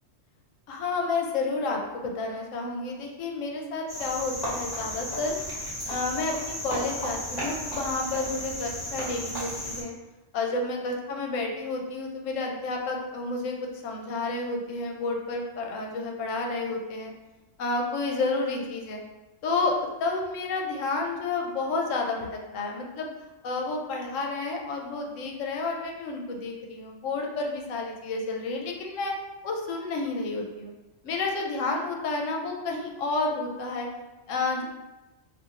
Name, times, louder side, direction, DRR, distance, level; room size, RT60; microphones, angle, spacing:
voice 1, 0.7-5.4 5.9-9.9 10.3-13.6 13.8-17.1 17.6-19.0 19.4-23.1 23.4-29.1 29.4-30.7 31.0-33.9 34.3-34.7, left 3 dB, 80° left, 1 dB, 0.9 m, -30 dB
Cricket, 3.9-9.8, equal, 35° left, 1.0 m, -34 dB
2.5 x 2.5 x 2.8 m, 1.1 s
omnidirectional pair, 1.3 m